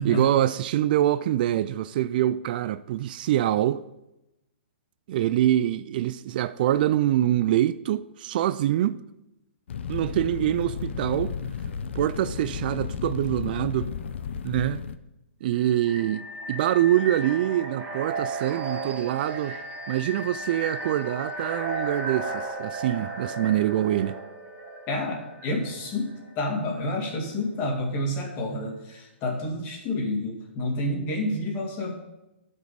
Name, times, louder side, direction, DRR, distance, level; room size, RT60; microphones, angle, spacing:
voice 1, 0.0-3.8 5.1-9.0 9.9-11.3 11.9-13.9 14.4-14.8 15.4-19.6 19.9-24.2, right 12 dB, 50° right, 0.3 m, -25 dB
Fire, 9.7-15.0, left 6 dB, 70° left, 0.7 m, -33 dB
sound 1, 15.5-26.3, right 2 dB, 30° right, 1.7 m, -35 dB
voice 2, 24.9-31.9, left 1 dB, 30° left, 2.3 m, -29 dB
12.0 x 5.4 x 5.0 m
hypercardioid pair, 140°, 7 cm